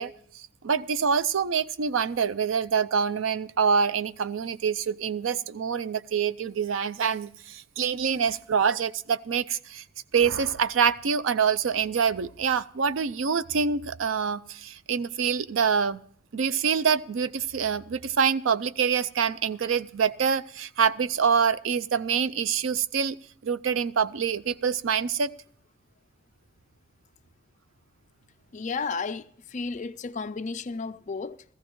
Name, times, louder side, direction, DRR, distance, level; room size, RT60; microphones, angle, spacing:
voice 1, 0.0-9.8 10.1-16.0 16.3-23.2 23.4-25.3, right 6 dB, 80° right, 0.5 m, -26 dB
voice 2, 28.5-31.4, left 4 dB, 40° left, 0.5 m, -33 dB
17.0 x 14.5 x 3.1 m
head